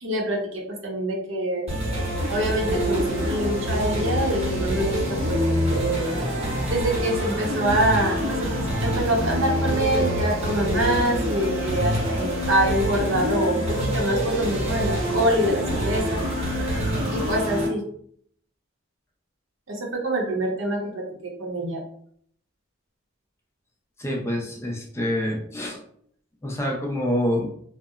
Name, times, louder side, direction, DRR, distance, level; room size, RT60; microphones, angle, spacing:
voice 1, 0.0-1.7 2.3-6.2 6.7-8.5 8.8-16.2 17.1-17.8 19.7-21.8, right 1 dB, 70° right, 0 dB, 0.7 m, -25 dB
sound 1, 1.7-17.7, equal, 30° right, 0.8 m, -25 dB
voice 2, 24.0-25.8 26.4-27.5, left 1 dB, 15° left, 0 dB, 0.4 m, -26 dB
2.8 x 2.0 x 2.3 m, 0.63 s
head